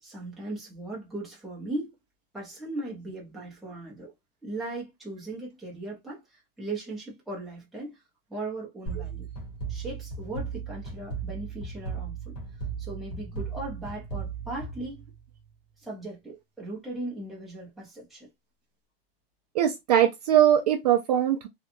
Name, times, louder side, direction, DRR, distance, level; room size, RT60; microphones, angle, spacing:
voice 1, 0.0-1.9 2.3-4.1 4.4-8.0 8.3-9.3 9.7-12.3 12.8-15.0 15.8-18.3, right 2 dB, ahead, 0.6 m, -38 dB
sound 1, 8.9-15.5, right 5 dB, 35° left, 1.2 m, -36 dB
voice 2, 19.5-21.5, right 10 dB, 45° right, 0.4 m, -21 dB
2.8 x 2.2 x 2.5 m
supercardioid pair, 175°, 30 cm